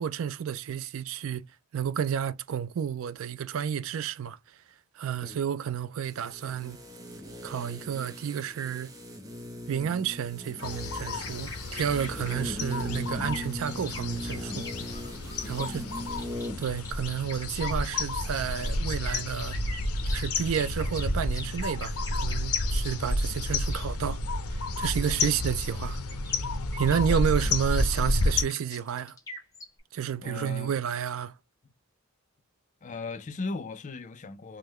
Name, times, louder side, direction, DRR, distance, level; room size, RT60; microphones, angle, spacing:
voice 1, 0.0-1.5 1.7-4.6 5.0-6.8 7.4-8.9 9.7-14.7 15.5-15.8 16.6-19.6 20.1-24.2 24.5-26.0 26.8-29.2 29.9-31.3, right 8 dB, 65° right, 0.3 m, -31 dB
sound 1, 6.0-16.7 17.0-17.1, left 1 dB, 15° right, 0.6 m, -39 dB
sound 2, 10.6-28.4, left 2 dB, 85° left, 0.7 m, -31 dB
sound 3, 10.6-23.8 25.9-29.8, left 2 dB, 15° left, 0.9 m, -44 dB
voice 2, 12.0-12.4 15.4-16.1 26.9-27.6 30.2-30.7 32.8-34.6, left 3 dB, 35° left, 0.4 m, -39 dB
3.5 x 2.1 x 3.0 m
head